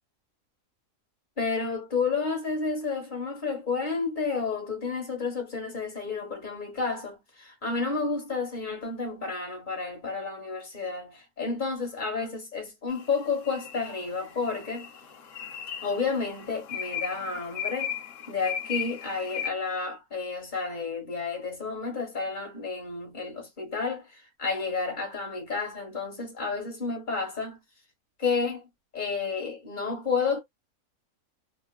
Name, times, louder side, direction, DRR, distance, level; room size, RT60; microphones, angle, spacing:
voice 1, 1.4-14.9 15.8-17.9 18.3-27.6 28.2-28.6 28.9-30.4, left 4 dB, 35° left, 1.4 m, -31 dB
sound 1, 12.9-19.5, left 8 dB, 65° left, 1.0 m, -37 dB
3.0 x 2.3 x 2.2 m
omnidirectional pair, 1.6 m